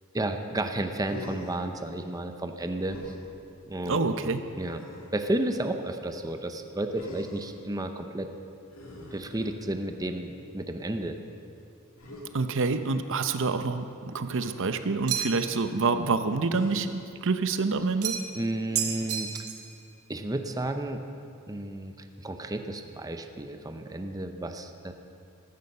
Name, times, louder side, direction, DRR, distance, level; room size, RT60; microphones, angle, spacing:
voice 1, 0.1-3.0 3.7-4.3 4.6-4.8 5.1-8.3 9.1-11.2 18.3-19.3 20.1-21.0 21.5-21.9 22.2-24.9, right 1 dB, 15° right, 6 dB, 0.7 m, -32 dB
Human voice, 1.0-1.6 2.9-3.2 4.5-5.2 6.9-7.6 8.7-9.9 12.0-12.3 14.2-14.5 16.5-17.0 18.6-19.1, left 1 dB, 65° left, 2.6 m, -45 dB
voice 2, 3.9-4.4 12.3-18.2, right 4 dB, 60° right, 10 dB, 0.7 m, -27 dB
sound 1, 15.1-15.6 18.0-18.4 18.8-19.7, right 8 dB, 85° right, 1.5 m, -31 dB
15.0 x 13.5 x 5.5 m, 2.5 s
head